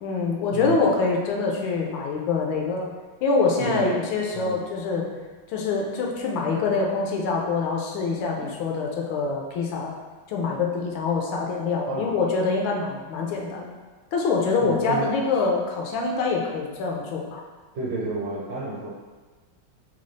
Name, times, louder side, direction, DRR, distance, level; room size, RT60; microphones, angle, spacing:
voice 1, 0.0-2.9 3.2-5.1 5.5-9.9 10.3-13.7 14.1-17.4, left 4 dB, 80° left, 0 dB, 1.3 m, -25 dB
voice 2, 0.5-0.8 3.6-4.0 4.3-4.6 11.9-12.0 14.6-15.0 17.7-18.9, right 3 dB, 65° right, -5 dB, 1.2 m, -30 dB
4.0 x 2.3 x 3.1 m, 1.3 s
omnidirectional pair, 2.2 m